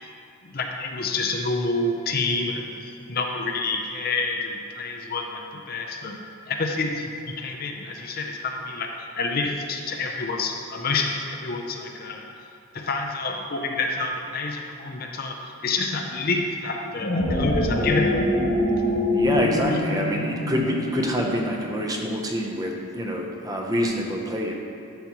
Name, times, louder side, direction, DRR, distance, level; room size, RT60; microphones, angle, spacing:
voice 1, 0.4-6.2 6.5-12.2 12.7-18.2, left 3 dB, 45° left, 2 dB, 0.5 m, -28 dB
sound 1, 16.9-21.4, left 1 dB, 70° left, 2.0 m, -24 dB
voice 2, 19.1-24.5, equal, 15° right, 0 dB, 0.6 m, -26 dB
11.5 x 5.8 x 2.9 m, 2.6 s
head